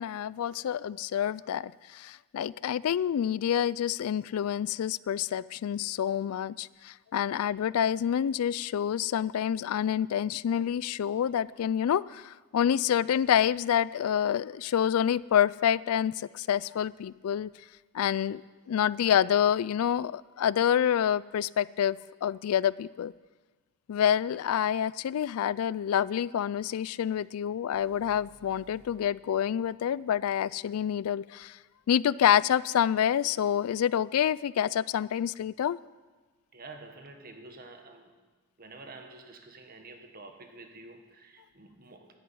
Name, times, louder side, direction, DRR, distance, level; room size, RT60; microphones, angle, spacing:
voice 1, 0.0-17.5 17.9-23.1 23.9-31.6 31.9-35.8, left 9 dB, 80° left, 20 dB, 0.3 m, -27 dB
sound 1, 27.7-31.7, equal, 30° left, 3.2 m, -62 dB
voice 2, 36.5-38.1 38.6-42.2, right 3 dB, 45° right, 5 dB, 1.5 m, -49 dB
11.0 x 9.5 x 9.1 m, 1.3 s
head